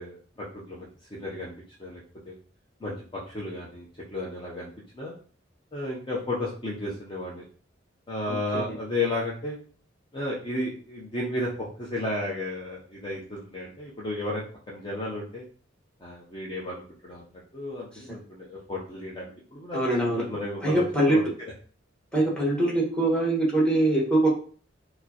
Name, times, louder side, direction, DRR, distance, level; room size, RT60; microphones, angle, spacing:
voice 1, 0.0-1.5 1.8-2.0 2.3-2.4 2.8-5.2 5.7-7.5 8.1-9.6 10.1-15.4 16.0-17.2 17.5-19.8 20.1-21.5, left 1 dB, 25° left, -5 dB, 0.6 m, -33 dB
voice 2, 8.3-8.6 19.7-20.2 20.6-21.2 22.1-24.3, right 1 dB, 5° left, -3 dB, 1.1 m, -23 dB
4.7 x 2.0 x 2.8 m, 0.42 s
head